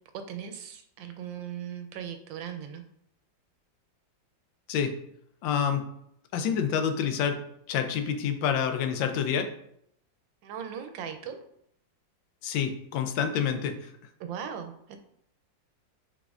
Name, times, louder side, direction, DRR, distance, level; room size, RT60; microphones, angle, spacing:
voice 1, 0.1-2.8 10.4-11.4 14.2-15.0, right 8 dB, 85° right, 7 dB, 1.3 m, -38 dB
voice 2, 5.4-5.8 6.3-7.4 7.7-9.5 12.4-13.9, left 7 dB, 90° left, 7 dB, 1.3 m, -27 dB
6.0 x 3.2 x 2.4 m, 0.72 s
omnidirectional pair, 2.0 m